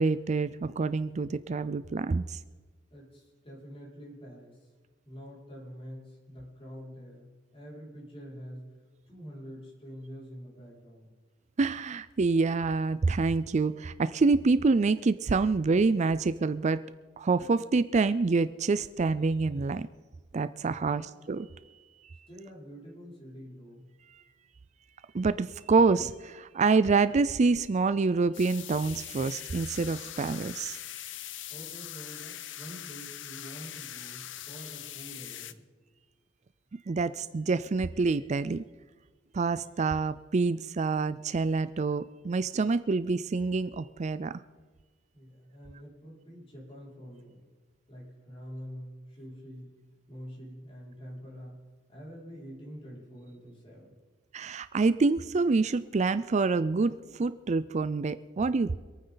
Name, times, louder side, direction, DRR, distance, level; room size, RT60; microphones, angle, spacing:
voice 1, 0.0-2.4 11.6-16.8 17.2-19.9 20.3-21.5 25.1-30.8 36.9-38.6 39.3-44.4 54.3-58.8, right 4 dB, 40° right, 14 dB, 0.4 m, -27 dB
voice 2, 2.9-4.7 5.0-8.7 9.1-11.1 20.8-21.1 22.3-23.9 31.5-35.6 45.1-47.4 47.9-49.8 50.1-51.6 51.9-53.9, equal, 30° left, -4 dB, 5.6 m, -46 dB
sound 1, 28.3-35.5, left 12 dB, 70° left, 0.7 m, -42 dB
26.0 x 9.5 x 4.0 m, 1.4 s
head